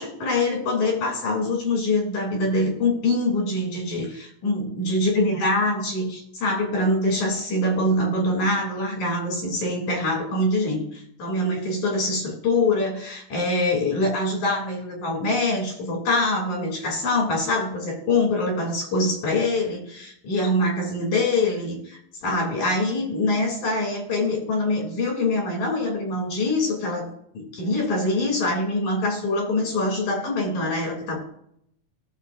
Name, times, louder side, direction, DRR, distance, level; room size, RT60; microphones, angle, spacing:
voice 1, 0.0-27.1 27.3-31.2, left 2 dB, 70° left, 0 dB, 4.5 m, -24 dB
18.0 x 7.1 x 2.6 m, 0.71 s
omnidirectional pair, 3.6 m